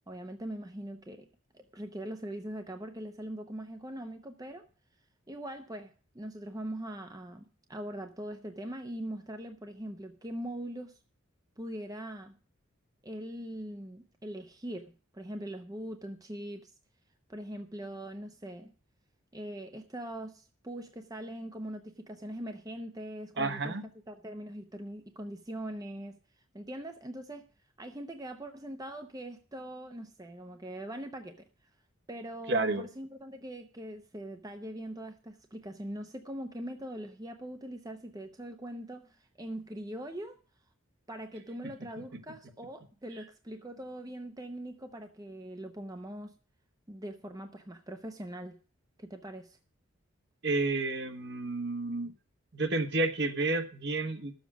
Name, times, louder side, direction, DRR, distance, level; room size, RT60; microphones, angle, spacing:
voice 1, 0.1-1.3 1.5-4.7 5.3-11.0 11.6-12.4 13.0-16.7 17.3-18.7 19.3-23.8 24.1-26.2 26.5-27.5 27.8-31.4 32.1-40.4 41.1-46.3 46.9-48.6 49.0-49.6, right 1 dB, 15° right, 0.7 m, -42 dB
voice 2, 23.4-23.8 32.5-32.8 50.4-52.1 52.5-54.3, right 2 dB, 55° right, 1.3 m, -30 dB
12.5 x 7.3 x 6.1 m
head